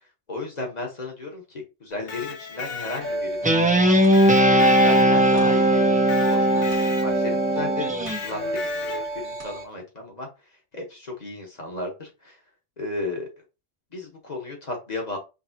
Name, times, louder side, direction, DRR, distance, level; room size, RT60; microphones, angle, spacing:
voice 1, 0.3-3.5 4.4-10.3 10.7-12.4 12.8-13.3 13.9-15.2, left 2 dB, 40° left, 1 dB, 1.5 m, -34 dB
Electric guitar, 1.9-3.4 4.1-5.5 6.1-7.4 8.1-9.3, left 5 dB, 65° left, 0.9 m, -36 dB
sound 1, 3.0-9.6, right 1 dB, 75° right, 1.6 m, -31 dB
Guitar, 3.4-8.2, right 1 dB, 10° right, 0.5 m, -19 dB
5.5 x 3.1 x 2.9 m, 0.28 s
omnidirectional pair, 1.1 m